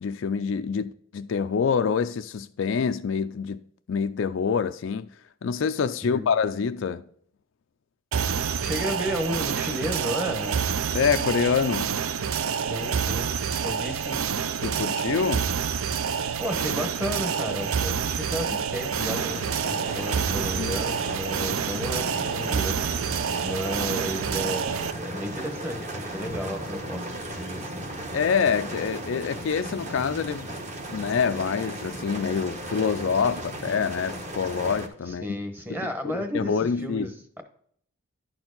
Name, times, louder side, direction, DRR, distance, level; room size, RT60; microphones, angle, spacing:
voice 1, 0.0-3.6 3.9-5.1 5.4-7.0 10.9-12.0 14.6-15.5 20.6-20.8 28.1-30.5 30.9-35.3 35.7-37.1, left 6 dB, 60° left, 0.4 m, -26 dB
sound 1, 8.1-24.9, right 7 dB, 75° right, 0.5 m, -28 dB
voice 2, 8.6-10.6 12.6-14.2 16.1-27.9 35.1-37.4, equal, 10° right, 0.9 m, -33 dB
sound 2, 18.9-34.9, right 1 dB, 30° right, 1.1 m, -36 dB
11.0 x 4.4 x 3.9 m
head